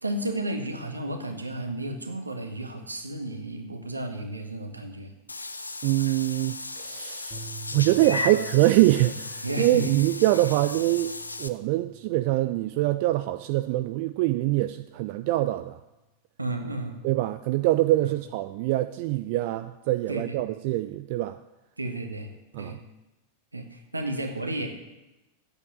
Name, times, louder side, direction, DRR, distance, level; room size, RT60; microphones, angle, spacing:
voice 1, 0.0-5.1 9.4-9.9 16.4-17.0 18.0-18.1 20.1-20.4 21.8-22.3 22.6-22.8 23.5-24.7, right 1 dB, 80° right, 4 dB, 1.6 m, -32 dB
Meow / Water / Bathtub (filling or washing), 5.3-11.5, left 3 dB, 80° left, 0.6 m, -35 dB
voice 2, 5.8-7.4 7.7-11.1 11.4-15.8 17.0-21.4 22.5-22.8, right 17 dB, 45° right, 10 dB, 0.4 m, -24 dB
sound 1, 7.3-15.7, right 3 dB, 25° right, 2.0 m, -48 dB
8.6 x 8.2 x 8.7 m, 1.0 s
figure-of-eight pair, 90°, 0 cm